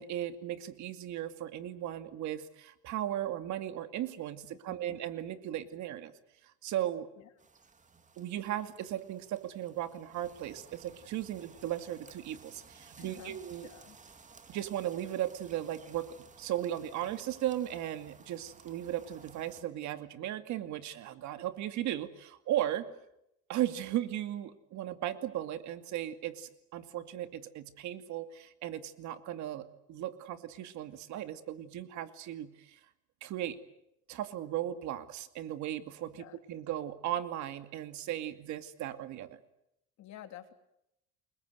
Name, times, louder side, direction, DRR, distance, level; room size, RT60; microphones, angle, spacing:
voice 1, 0.0-6.1 6.4-7.1 8.2-13.7 14.5-22.9 23.5-32.8 33.2-33.6 34.1-39.4, right 12 dB, 60° right, 10 dB, 2.4 m, -36 dB
voice 2, 4.7-5.0 7.2-7.3 13.0-14.0 36.1-36.4 40.0-40.5, left 12 dB, 60° left, 8 dB, 3.2 m, -51 dB
sound 1, 7.4-19.6, right 4 dB, 25° right, 2.5 m, -57 dB
29.5 x 22.0 x 8.0 m, 0.83 s
cardioid pair, 135°, 32 cm